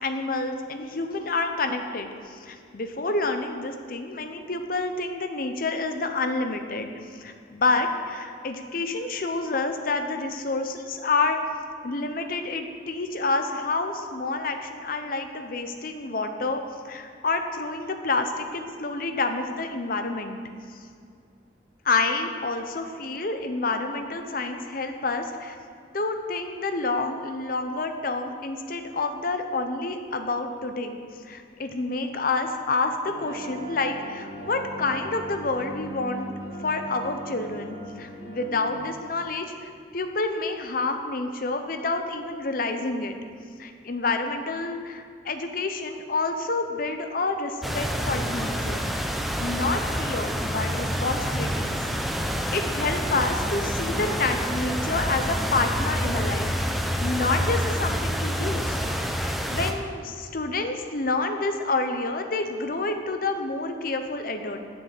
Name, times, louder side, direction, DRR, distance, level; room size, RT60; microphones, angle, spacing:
voice 1, 0.0-11.4 11.8-20.4 20.7-20.8 21.8-25.6 25.9-31.0 31.2-36.3 36.6-43.2 43.6-49.1 49.4-51.8 52.5-58.8 59.2-64.6, left 3 dB, 50° left, 6 dB, 0.7 m, -28 dB
sound 1, 33.0-38.8, right 1 dB, 65° left, 2.3 m, -39 dB
sound 2, 47.6-59.7, equal, ahead, 0.5 m, -27 dB
7.5 x 6.5 x 7.6 m, 2.3 s
head